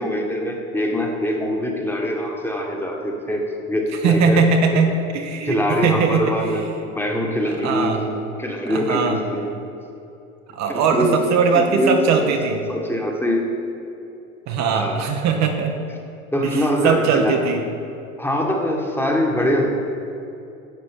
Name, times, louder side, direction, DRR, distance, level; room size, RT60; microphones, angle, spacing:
voice 1, 0.0-4.4 4.7-4.8 5.4-8.1 8.4-9.6 10.7-11.2 11.5-12.3 12.7-13.4 14.7-15.0 16.3-17.4 18.2-19.7, equal, 5° left, 0 dB, 1.5 m, -23 dB
voice 2, 4.0-6.6 7.5-8.0 8.7-9.2 10.5-12.6 14.5-15.8 16.4-17.6, right 5 dB, 45° right, 3 dB, 1.0 m, -20 dB
11.5 x 7.8 x 3.7 m, 2.8 s
figure-of-eight pair, 75°, 40 cm